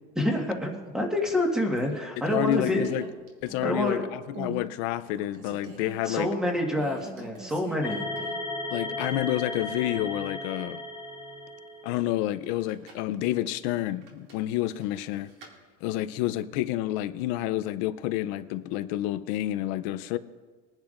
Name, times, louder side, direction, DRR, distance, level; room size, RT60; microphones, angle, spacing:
voice 1, 0.1-2.9 3.6-4.1 6.0-8.0, left 1 dB, 5° right, 1 dB, 1.5 m, -27 dB
sound 1, 1.0-1.4 1.8-3.9 4.3-4.7 5.0-6.1 6.7-8.5 8.8-8.9 12.4-13.1 14.0-15.5, right 1 dB, 50° right, 2.5 m, -44 dB
voice 2, 2.3-3.0 3.4-6.3 8.7-10.8 11.8-15.3 15.8-20.2, left 14 dB, 55° left, 14 dB, 0.5 m, -29 dB
sound 2, 7.8-12.1, left 2 dB, 20° left, 1.9 m, -35 dB
22.0 x 10.5 x 2.5 m, 1.4 s
cardioid pair, 165°, 21 cm